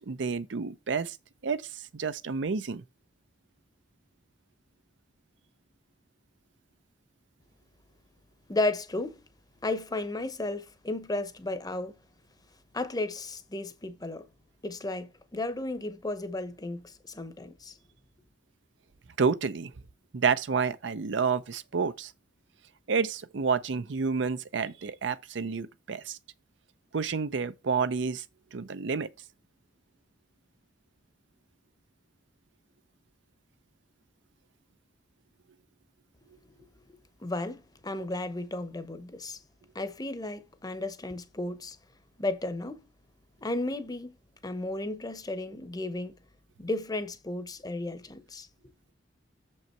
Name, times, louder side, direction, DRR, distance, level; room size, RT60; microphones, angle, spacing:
voice 1, 0.1-1.2 1.4-2.8 19.2-19.7 20.1-22.1 22.9-26.2 26.9-28.2 28.5-29.1, right 5 dB, 75° right, 0.5 m, -29 dB
voice 2, 8.5-9.2 9.6-11.9 12.7-14.3 14.6-17.7 37.2-39.4 39.7-41.8 42.2-42.8 43.4-44.1 44.4-46.1 46.6-48.5, left 2 dB, 20° left, 0.8 m, -34 dB
7.0 x 5.4 x 4.4 m
head